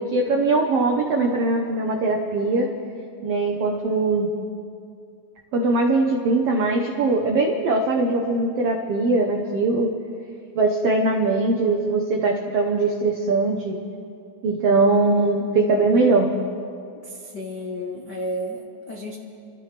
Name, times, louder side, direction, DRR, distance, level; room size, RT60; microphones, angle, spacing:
voice 1, 0.0-2.7 3.2-4.3 5.5-9.9 10.6-13.8 14.4-16.3, right 3 dB, 90° right, 1 dB, 1.3 m, -21 dB
voice 2, 17.0-19.2, equal, 90° left, -2 dB, 0.9 m, -32 dB
30.0 x 13.5 x 3.3 m, 2.4 s
omnidirectional pair, 4.2 m